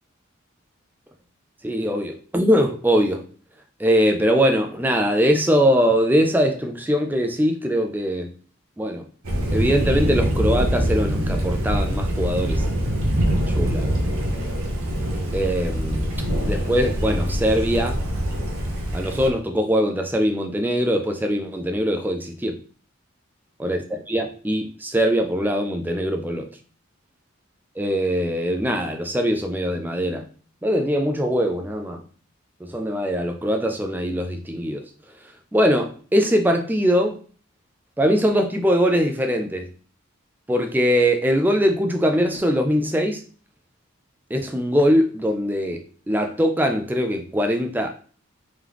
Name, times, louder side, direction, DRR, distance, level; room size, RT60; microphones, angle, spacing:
voice 1, 1.6-3.2 3.8-8.3 8.8-9.1 9.5-12.6 13.5-14.0 15.3-16.1 16.4-18.0 18.9-22.6 23.6-26.5 27.8-30.2 30.6-32.0 32.6-34.8 35.5-37.2 38.0-39.7 40.5-43.2 44.3-47.9, equal, 10° right, 0.3 m, -22 dB
Thunder, 9.2-19.3, equal, 85° right, 0.8 m, -24 dB
3.7 x 3.0 x 3.4 m
head